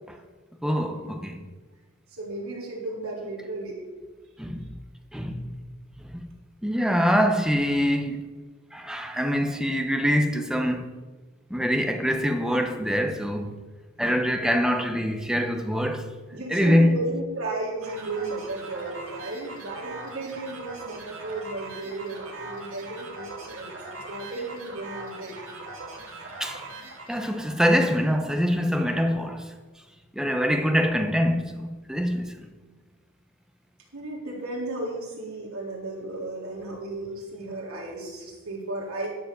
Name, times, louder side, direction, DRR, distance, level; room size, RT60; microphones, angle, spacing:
voice 1, 0.6-1.4 4.4-4.6 5.1-5.4 6.1-6.3 6.6-8.3 8.7-10.9 11.5-13.6 14.0-16.1 16.5-16.9 26.4-26.6 27.1-29.4 30.1-32.3, equal, 5° right, 0.9 m, -24 dB
voice 2, 2.1-3.8 14.3-14.5 16.3-25.4 33.9-39.1, right 2 dB, 90° right, 3.7 m, -34 dB
sound 1, 17.8-27.6, right 2 dB, 65° right, 2.8 m, -41 dB
12.0 x 7.2 x 6.6 m
head